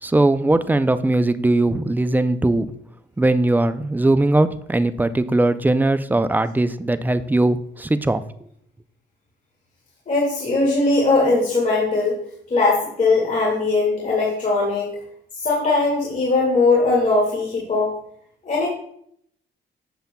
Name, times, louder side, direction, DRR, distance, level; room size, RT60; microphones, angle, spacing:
voice 1, 0.0-2.7 3.2-8.2, right 2 dB, 10° right, 12 dB, 0.4 m, -19 dB
voice 2, 10.1-12.2 12.5-14.9 15.3-17.9 18.4-18.7, left 3 dB, 40° left, -4 dB, 2.0 m, -20 dB
8.0 x 6.7 x 2.2 m, 0.67 s
cardioid pair, 90°, 20 cm